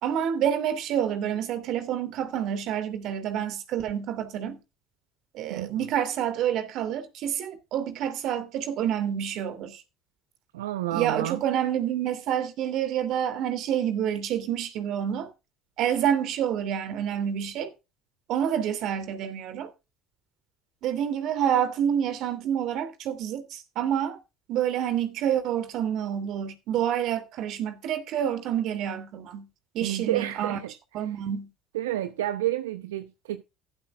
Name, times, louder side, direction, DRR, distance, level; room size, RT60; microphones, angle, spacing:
voice 1, 0.0-4.6 5.3-9.8 10.9-15.3 15.8-17.7 18.3-19.7 20.8-24.2 24.5-29.5 29.7-30.6 30.9-31.5, right 9 dB, 60° right, 2.8 m, -28 dB
voice 2, 5.5-5.9 10.5-11.4 29.8-30.7 31.7-33.4, right 14 dB, 85° right, 0.8 m, -30 dB
15.0 x 12.5 x 2.4 m
hypercardioid pair, 75°, 0 cm